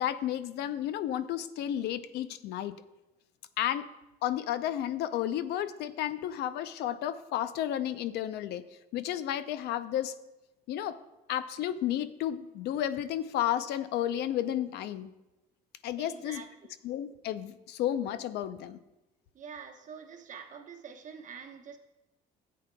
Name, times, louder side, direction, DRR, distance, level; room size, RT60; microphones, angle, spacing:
voice 1, 0.0-2.8 3.6-3.9 4.2-8.7 8.9-10.1 10.7-11.0 11.3-15.1 15.8-16.4 16.8-18.8, left 11 dB, 80° left, 13 dB, 0.5 m, -32 dB
voice 2, 16.0-16.7 19.3-21.8, right 6 dB, 50° right, 4 dB, 1.1 m, -46 dB
13.5 x 8.5 x 2.2 m, 0.99 s
cardioid pair, 110°, 17 cm